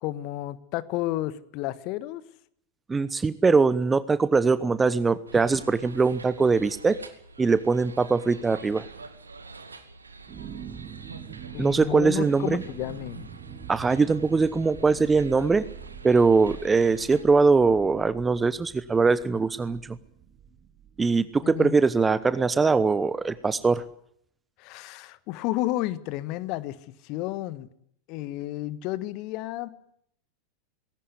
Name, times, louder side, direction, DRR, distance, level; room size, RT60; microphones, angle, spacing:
voice 1, 0.0-2.2 11.5-13.3 21.4-21.7 24.6-26.8 27.0-27.7 28.1-29.7, left 16 dB, 45° left, 16 dB, 1.5 m, -31 dB
voice 2, 2.9-7.0 7.4-8.9 11.6-12.6 13.7-15.6 16.0-20.0 21.0-23.8, right 4 dB, 15° right, 16 dB, 1.0 m, -22 dB
sound 1, 5.3-17.2, right 4 dB, 80° right, 2.2 m, -46 dB
sound 2, 10.3-23.9, right 8 dB, 35° right, 2.3 m, -46 dB
19.5 x 17.5 x 9.8 m, 0.69 s
figure-of-eight pair, 85°, 0 cm